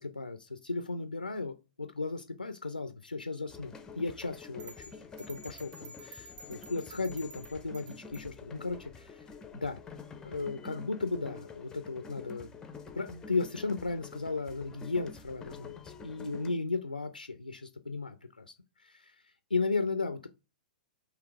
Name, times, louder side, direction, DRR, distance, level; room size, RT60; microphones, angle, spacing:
voice 1, 0.0-9.2 9.5-9.8 10.2-12.5 12.9-18.5 18.8-19.1 19.5-20.3, left 3 dB, 85° left, 0.4 m, -35 dB
sound 1, 3.5-16.5, left 5 dB, 15° left, 0.5 m, -48 dB
sound 2, 4.6-8.3, right 1 dB, 30° right, 1.0 m, -50 dB
3.9 x 2.9 x 4.4 m
figure-of-eight pair, 105°, 5 cm